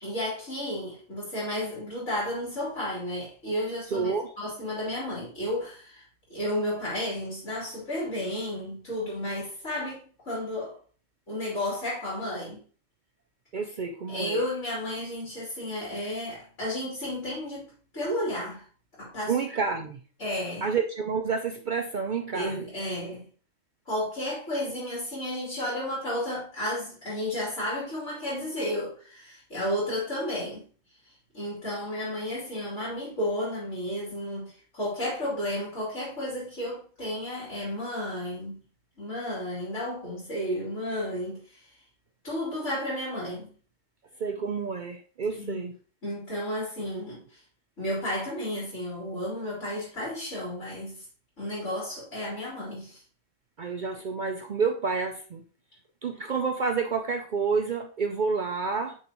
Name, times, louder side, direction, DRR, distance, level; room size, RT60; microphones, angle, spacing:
voice 1, 0.0-6.0 6.3-10.8 11.3-12.6 14.1-18.6 19.0-19.3 20.2-20.7 22.3-23.3 23.8-30.6 31.3-38.6 39.0-41.6 42.2-43.5 45.3-45.6 46.0-47.4 47.8-51.0 51.4-53.0, left 1 dB, 65° left, 3.4 m, -32 dB
voice 2, 3.9-4.3 13.5-14.4 19.3-20.0 20.6-22.7 44.2-45.8 53.6-55.4 56.0-59.0, right 5 dB, 60° right, 0.5 m, -29 dB
6.6 x 5.5 x 2.9 m
omnidirectional pair, 1.3 m